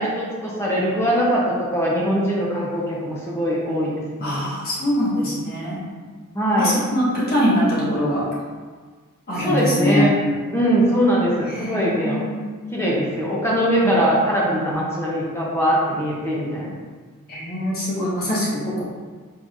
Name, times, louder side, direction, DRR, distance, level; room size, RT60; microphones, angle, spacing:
voice 1, 0.0-3.9 4.2-4.4 6.3-6.7 9.4-10.2 10.5-12.2 12.7-16.7, equal, 10° left, -5 dB, 0.7 m, -21 dB
voice 2, 4.2-5.8 6.6-8.3 9.3-10.1 11.4-12.4 13.8-13.9 14.6-14.8 17.3-18.8, equal, 45° left, -8 dB, 1.5 m, -23 dB
4.6 x 3.9 x 2.5 m, 1.5 s
head